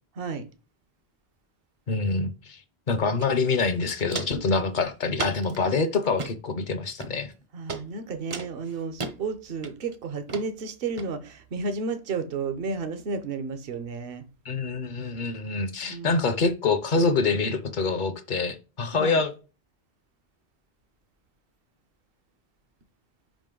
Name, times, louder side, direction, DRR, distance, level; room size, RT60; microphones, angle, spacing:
voice 1, 1.9-2.6 2.9-7.3 14.5-19.3, left 4 dB, 55° left, 0.8 m, -26 dB
Walk footsteps, 3.2-3.3 3.6-4.5 5.1-5.6 6.0-6.3 7.0-7.4 7.7-7.8 8.3-9.1 9.6-10.0 10.3-10.5 11.0-11.1, right 3 dB, 40° right, 0.6 m, -35 dB
voice 2, 7.5-14.2 15.8-16.2 18.9-19.2, right 4 dB, 65° right, 1.0 m, -32 dB
5.1 x 5.0 x 3.8 m
omnidirectional pair, 1.1 m